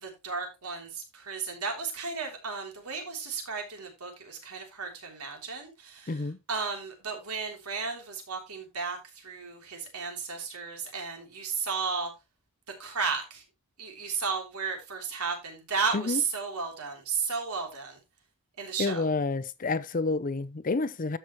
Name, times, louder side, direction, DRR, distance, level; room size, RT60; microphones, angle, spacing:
voice 1, 0.0-6.1 6.5-12.1 12.8-13.4 13.8-18.0 18.6-19.0, right 5 dB, 85° right, 3.3 m, -34 dB
voice 2, 6.1-6.4 15.9-16.2 18.8-21.2, left 3 dB, 35° left, 0.6 m, -29 dB
13.0 x 6.0 x 3.1 m
head